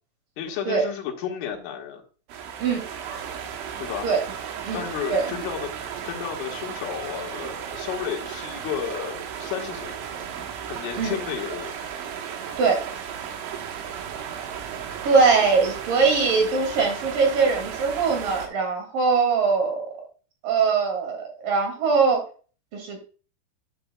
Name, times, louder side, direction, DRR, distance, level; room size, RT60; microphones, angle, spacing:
voice 1, 0.4-2.0 3.8-4.1 4.7-5.7 6.0-9.9 10.7-11.7, left 8 dB, 85° left, 1 dB, 4.2 m, -32 dB
sound 1, 2.3-18.5, right 8 dB, 80° right, 3.7 m, -35 dB
voice 2, 15.0-19.9 20.4-22.2 22.7-23.0, right 4 dB, 50° right, 2 dB, 3.6 m, -21 dB
13.5 x 8.4 x 2.3 m, 0.38 s
omnidirectional pair, 5.5 m